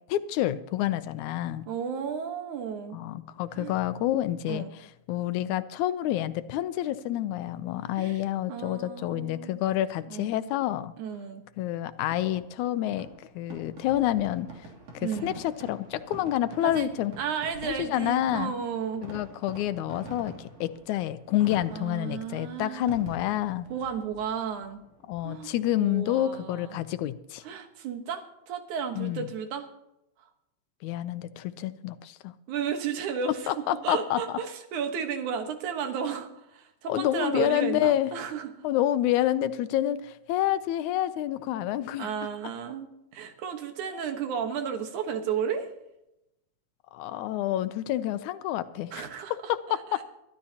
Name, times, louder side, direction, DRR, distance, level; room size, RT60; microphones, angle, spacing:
voice 1, 0.1-1.6 2.9-4.7 5.1-10.9 11.6-14.5 14.9-17.1 17.6-18.5 19.0-23.7 25.1-27.4 29.0-29.3 30.8-32.3 33.5-34.2 36.9-38.1 38.6-42.1 46.9-49.1 49.3-50.0, left 13 dB, 85° left, 13 dB, 2.1 m, -28 dB
voice 2, 1.7-3.0 3.6-3.7 4.5-4.7 8.0-8.2 8.5-9.6 10.1-10.3 11.0-11.4 15.0-15.4 16.6-19.0 21.7-23.0 23.7-24.8 25.2-26.8 27.4-29.7 32.5-38.5 42.0-45.7 48.9-49.3 49.7-50.0, right 7 dB, 85° right, 6 dB, 2.8 m, -33 dB
Fireworks, 12.1-25.6, right 2 dB, 60° right, 4.0 m, -47 dB
23.0 x 12.5 x 2.9 m, 0.87 s
omnidirectional pair, 3.3 m